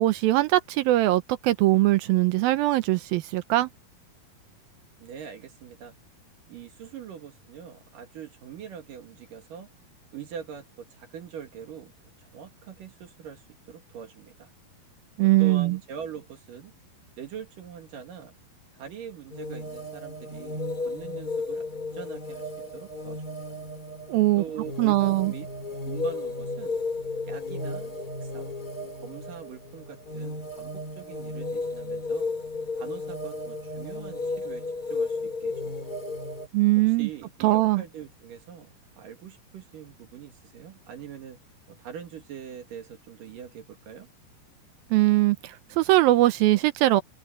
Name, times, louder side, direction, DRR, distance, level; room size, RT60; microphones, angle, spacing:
voice 1, 0.0-3.7 15.2-15.8 24.1-24.4 24.8-25.3 36.5-37.1 37.4-37.8 44.9-47.0, right 17 dB, 80° right, 2.4 m, -21 dB
voice 2, 5.0-5.9 6.5-9.7 10.1-11.9 12.2-13.4 13.7-14.5 15.2-16.7 17.2-18.3 18.7-23.4 24.4-25.5 25.9-26.8 27.3-27.9 28.2-28.5 29.0-32.3 32.8-34.6 34.9-35.7 36.9-41.4 41.7-44.1, right 8 dB, 60° right, 3.3 m, -42 dB
sound 1, 19.3-36.5, left 2 dB, 25° left, 4.2 m, -34 dB
omnidirectional pair, 4.5 m